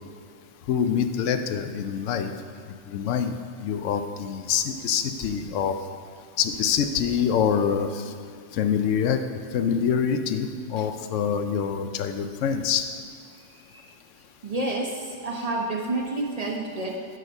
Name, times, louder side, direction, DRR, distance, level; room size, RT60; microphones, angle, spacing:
voice 1, 0.7-2.3 2.9-5.8 6.4-8.0 8.5-9.2 9.5-12.9, left 7 dB, 85° left, 8 dB, 0.9 m, -25 dB
voice 2, 13.3-13.9 14.4-17.1, right 2 dB, 40° right, 0 dB, 0.7 m, -30 dB
7.7 x 5.3 x 5.4 m, 2.3 s
omnidirectional pair, 1.2 m